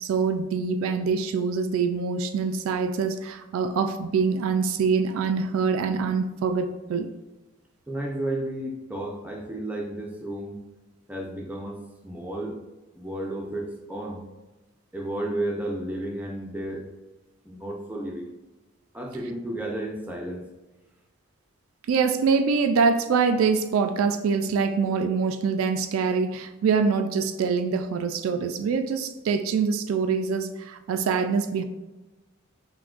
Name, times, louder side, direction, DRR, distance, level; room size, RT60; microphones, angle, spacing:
voice 1, 0.0-7.1 21.9-31.6, right 5 dB, 80° right, 8 dB, 0.3 m, -24 dB
voice 2, 7.9-10.6 11.1-12.6 13.0-14.2 14.9-16.9 17.4-18.3 18.9-20.5, right 1 dB, 10° right, 0 dB, 0.5 m, -32 dB
5.9 x 2.2 x 2.4 m, 1.1 s
head